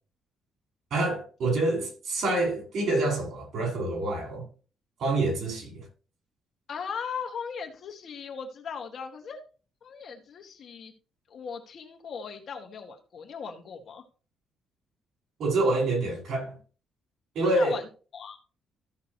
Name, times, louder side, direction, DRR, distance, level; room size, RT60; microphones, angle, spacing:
voice 1, 0.9-4.5 5.0-5.8 15.4-16.6 17.4-17.8, right 2 dB, 65° right, 5.2 m, -27 dB
voice 2, 6.7-9.4 9.8-10.9 11.3-14.0 17.6-17.9 18.1-18.4, left 6 dB, 50° left, 2.0 m, -38 dB
14.5 x 6.1 x 3.0 m
cardioid pair, 155°, 0 cm